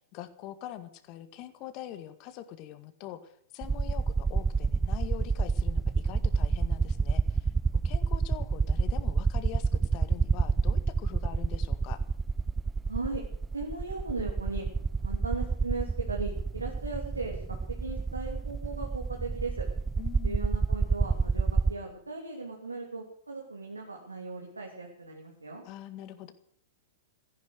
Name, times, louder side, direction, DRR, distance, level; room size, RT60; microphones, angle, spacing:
voice 1, 0.1-7.5 7.8-12.0 20.0-20.5 25.6-26.3, left 13 dB, 40° left, 11 dB, 1.8 m, -43 dB
sound 1, 3.6-21.7, right 4 dB, 15° right, 0.6 m, -28 dB
voice 2, 12.9-13.2 13.5-14.6 15.0-19.7 20.2-25.6, right 3 dB, 90° right, -1 dB, 3.0 m, -37 dB
15.0 x 10.5 x 8.1 m, 0.67 s
figure-of-eight pair, 110°, 0 cm